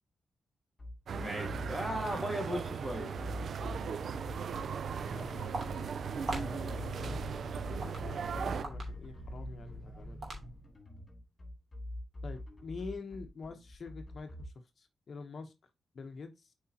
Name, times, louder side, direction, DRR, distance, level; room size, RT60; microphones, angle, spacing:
sound 1, 0.8-14.5, left 1 dB, 30° left, 3.7 m, -44 dB
voice 1, 1.1-3.2, equal, 15° right, 2.8 m, -37 dB
sound 2, 1.1-8.7, right 6 dB, 70° right, 0.4 m, -38 dB
Walk footsteps, 4.3-10.8, right 1 dB, 55° right, 2.9 m, -44 dB
voice 2, 5.1-5.6 6.3-7.2 7.8-10.2 12.2-15.5 15.9-16.5, left 4 dB, 55° left, 1.0 m, -46 dB
8.0 x 4.9 x 2.8 m
cardioid pair, 85°, 0 cm